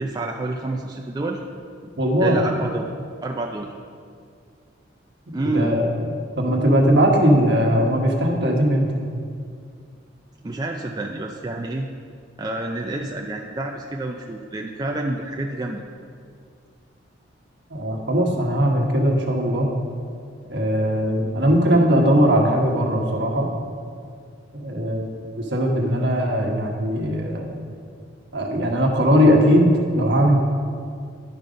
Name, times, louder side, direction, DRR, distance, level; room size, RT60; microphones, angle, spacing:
voice 1, 0.0-1.4 2.2-2.9 3.2-3.7 5.3-5.8 10.4-11.9 12.4-15.8, right 2 dB, 20° right, 1 dB, 0.4 m, -28 dB
voice 2, 2.0-2.5 5.4-8.9 17.7-19.7 20.5-23.5 24.5-25.1 25.4-27.6 28.3-30.4, equal, 60° right, 0 dB, 1.3 m, -19 dB
11.0 x 5.3 x 5.1 m, 2.2 s
head